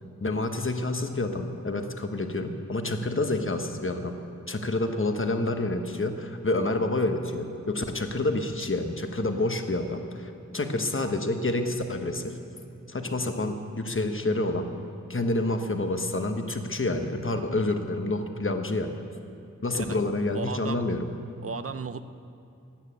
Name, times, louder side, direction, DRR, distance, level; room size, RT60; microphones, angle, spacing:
voice 1, 0.2-4.2 4.5-12.4 12.9-14.7 15.1-19.0 19.6-21.1, left 2 dB, 45° left, 6 dB, 1.1 m, -28 dB
voice 2, 20.3-20.9 21.4-22.1, right 5 dB, 50° right, 12 dB, 0.6 m, -35 dB
13.5 x 9.1 x 8.7 m, 2.6 s
wide cardioid pair, 60°, 29 cm